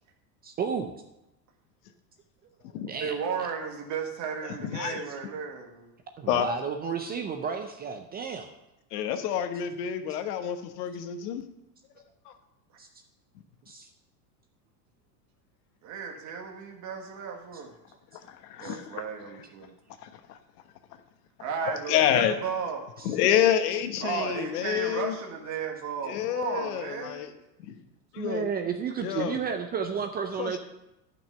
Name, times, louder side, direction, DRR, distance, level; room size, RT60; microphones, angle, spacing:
voice 1, 0.4-0.9 2.9-3.2 6.2-8.5 9.5-9.6 12.8-12.9 13.7-13.9 17.5-17.6 18.6-18.8 23.0-23.1 28.2-30.6, right 6 dB, 20° right, 6 dB, 0.5 m, -32 dB
voice 2, 3.0-5.9 15.8-17.7 18.6-19.7 21.4-22.9 24.0-27.2, right 6 dB, 35° right, 1 dB, 1.8 m, -34 dB
voice 3, 4.6-5.0 6.3-6.5 8.9-11.4 18.3-18.8 20.0-20.4 21.6-22.3 23.0-25.1 26.0-27.3 27.7-27.8 28.1-28.4 29.0-29.4 30.4-30.6, left 10 dB, 70° left, 8 dB, 1.2 m, -28 dB
10.5 x 6.0 x 5.6 m, 0.90 s
supercardioid pair, 125°, 48 cm